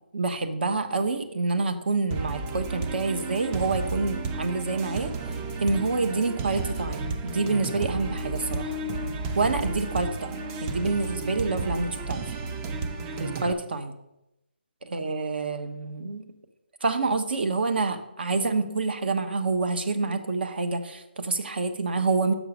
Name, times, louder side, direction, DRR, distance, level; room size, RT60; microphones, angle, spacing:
voice 1, 0.1-5.1 5.6-8.8 9.3-12.2 13.2-13.9 14.9-16.3 16.8-22.3, right 3 dB, 65° right, 8 dB, 1.0 m, -27 dB
sound 1, 2.1-13.5, right 3 dB, 15° right, 0.4 m, -32 dB
6.3 x 6.1 x 5.3 m, 0.89 s
hypercardioid pair, 155°, 6 cm